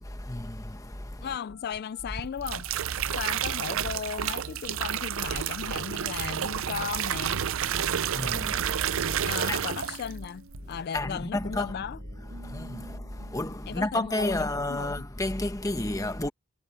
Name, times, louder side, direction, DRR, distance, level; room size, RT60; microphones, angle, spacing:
voice 1, 0.0-1.3 3.0-3.2 7.7-9.6 10.9-11.7 12.4-16.3, left 1 dB, 15° left, 1.1 m, -32 dB
voice 2, 1.2-2.6 3.1-7.5 9.2-12.0 13.7-14.9, left 7 dB, 45° left, 0.3 m, -36 dB
Telephone, 1.4-8.3, left 4 dB, 90° left, 7.6 m, -58 dB
sound 1, 2.2-10.2 10.5-10.9, right 9 dB, 60° right, 0.5 m, -30 dB
sound 2, 2.4-14.7, right 1 dB, 80° right, 3.2 m, -53 dB
head